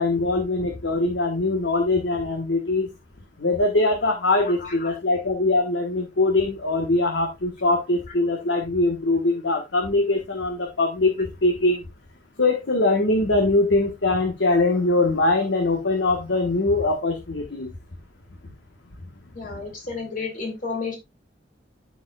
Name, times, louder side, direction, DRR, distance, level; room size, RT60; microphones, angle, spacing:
voice 1, 0.0-2.9 3.4-11.8 12.4-17.7, left 2 dB, 75° left, 2 dB, 1.4 m, -22 dB
voice 2, 19.4-21.0, left 4 dB, 45° left, 2 dB, 2.4 m, -31 dB
14.0 x 4.9 x 2.3 m, 0.22 s
head